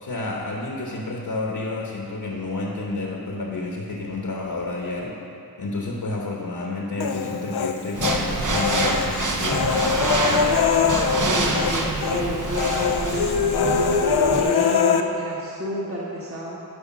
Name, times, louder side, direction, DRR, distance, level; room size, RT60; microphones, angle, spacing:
voice 1, 0.0-5.1 5.6-9.9, left 2 dB, 65° left, -1 dB, 1.2 m, -30 dB
Human voice, 7.0-8.2 8.5-11.8 12.0-12.2 12.5-15.0, left 6 dB, 85° left, 0.6 m, -22 dB
sound 1, 8.0-14.4, right 2 dB, 55° right, 1.0 m, -26 dB
voice 2, 11.2-16.6, equal, 35° right, -6 dB, 1.5 m, -31 dB
11.0 x 5.2 x 6.1 m, 2.7 s
wide cardioid pair, 70°, 38 cm